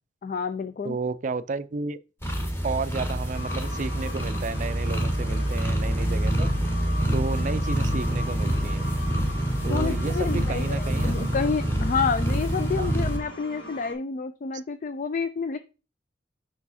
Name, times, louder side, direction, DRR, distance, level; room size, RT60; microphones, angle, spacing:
voice 1, 0.2-1.0 9.7-15.6, left 5 dB, 45° left, 0.3 m, -29 dB
voice 2, 0.8-2.0 2.6-6.5 7.1-8.9 9.6-11.3 12.8-12.9, right 4 dB, 45° right, 0.4 m, -32 dB
sound 1, 2.2-13.2, right 1 dB, 15° left, 1.1 m, -26 dB
sound 2, 3.3-13.9, left 1 dB, 80° left, 2.2 m, -40 dB
5.6 x 4.7 x 4.2 m
head